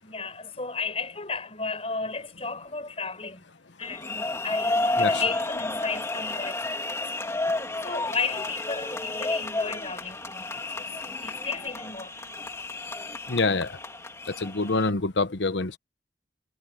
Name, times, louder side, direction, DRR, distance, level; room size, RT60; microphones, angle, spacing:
voice 1, 0.0-3.5 3.8-7.3 7.8-10.8 11.2-12.2, left 4 dB, 35° left, 6.5 m, -34 dB
sound 1, 3.8-14.9, left 2 dB, 15° left, 2.7 m, -31 dB
voice 2, 7.3-7.7 13.3-13.8 14.2-15.8, left 3 dB, 80° left, 1.0 m, -27 dB
head